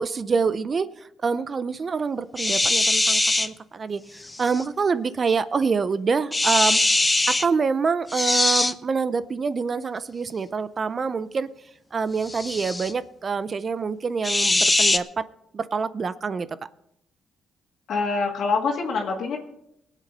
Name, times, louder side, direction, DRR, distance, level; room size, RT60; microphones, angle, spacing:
voice 1, 0.0-6.8 7.3-11.5 11.9-15.3 15.5-16.5, right 5 dB, 40° right, 15 dB, 0.6 m, -26 dB
sound 1, 2.4-3.5 4.3-4.6 6.3-7.5 8.1-8.7 12.2-12.9 14.2-15.0, left 2 dB, 15° left, 0.7 m, -21 dB
voice 2, 17.9-19.4, left 4 dB, 65° left, -1 dB, 2.0 m, -25 dB
19.5 x 8.2 x 5.3 m, 0.81 s
cardioid pair, 90°, 0 cm